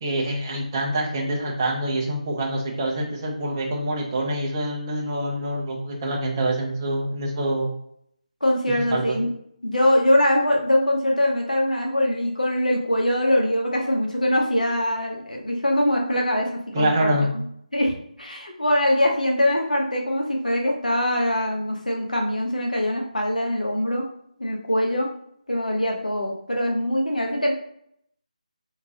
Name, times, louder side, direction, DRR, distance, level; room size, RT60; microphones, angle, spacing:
voice 1, 0.0-7.7 8.7-9.2 16.7-17.3, right 1 dB, 25° right, 0 dB, 0.7 m, -26 dB
voice 2, 8.4-9.3 9.6-17.4 17.7-24.1 24.4-25.1 25.5-27.5, left 1 dB, 80° left, 0 dB, 1.0 m, -23 dB
3.6 x 2.8 x 2.8 m, 0.69 s
figure-of-eight pair, 155°, 4 cm